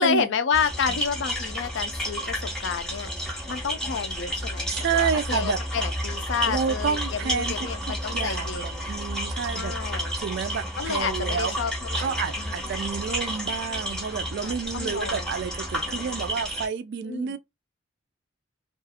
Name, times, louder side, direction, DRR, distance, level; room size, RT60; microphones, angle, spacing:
voice 1, 0.0-8.9 9.5-10.2 10.8-12.7 14.4-15.4 15.8-16.2 17.0-17.3, left 6 dB, 65° left, 0.4 m, -30 dB
sound 1, 0.5-16.7, equal, 5° left, 0.6 m, -31 dB
voice 2, 4.7-5.6 6.5-7.7 8.1-9.7 10.2-11.5 12.0-17.4, right 6 dB, 60° right, 0.3 m, -29 dB
2.4 x 2.3 x 2.7 m
head